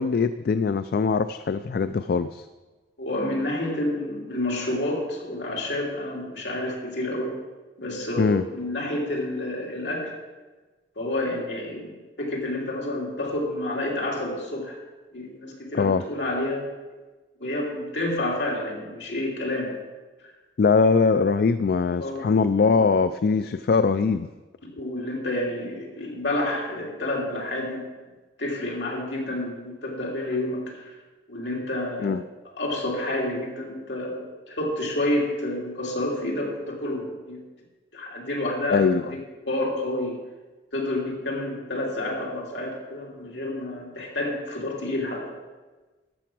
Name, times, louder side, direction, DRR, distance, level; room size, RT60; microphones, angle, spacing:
voice 1, 0.0-2.4 8.2-8.4 15.7-16.0 20.6-24.3 32.0-32.2 38.7-39.1, left 5 dB, 55° left, 11 dB, 0.3 m, -22 dB
voice 2, 3.0-7.4 7.8-10.2 11.0-14.8 15.1-16.7 17.4-19.8 22.0-22.3 24.6-27.9 28.4-31.0 31.3-32.3 32.6-37.4 37.9-40.2 40.7-45.4, left 1 dB, 75° left, -2 dB, 2.8 m, -29 dB
13.5 x 6.8 x 6.1 m, 1.2 s
head